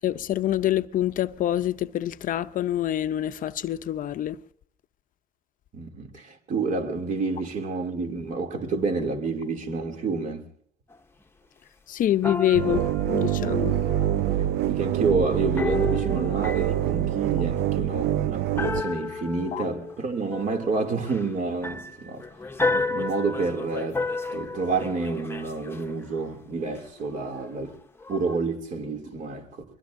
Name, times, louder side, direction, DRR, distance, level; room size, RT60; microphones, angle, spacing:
voice 1, 0.0-4.4 11.9-12.8 13.1-13.8 19.5-19.6, left 12 dB, 55° left, 0.6 m, -26 dB
voice 2, 5.7-10.4 14.7-22.3 22.7-24.0 24.3-27.7 28.1-29.6, right 4 dB, 50° right, 2.7 m, -29 dB
sound 1, 10.9-11.0 12.2-14.5 15.6-17.9 18.6-26.2 26.8-27.7 28.0-28.4, left 3 dB, 15° left, 0.9 m, -32 dB
sound 2, 12.5-18.8, right 12 dB, 80° right, 0.5 m, -25 dB
22.5 x 22.0 x 2.6 m
cardioid pair, 110°, 17 cm